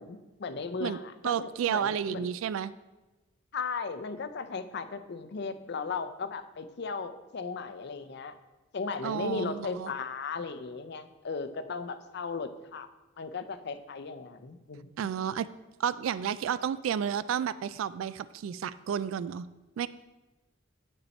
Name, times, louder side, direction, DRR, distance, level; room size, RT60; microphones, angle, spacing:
voice 1, 0.0-2.3 3.5-8.3 8.7-12.9 13.2-14.9, left 4 dB, 55° left, 10 dB, 0.5 m, -36 dB
voice 2, 1.2-2.7 9.0-9.9 15.0-15.5 15.8-19.5 19.8-19.9, right 8 dB, 85° right, 17 dB, 0.3 m, -31 dB
8.3 x 7.0 x 4.2 m, 1.1 s
head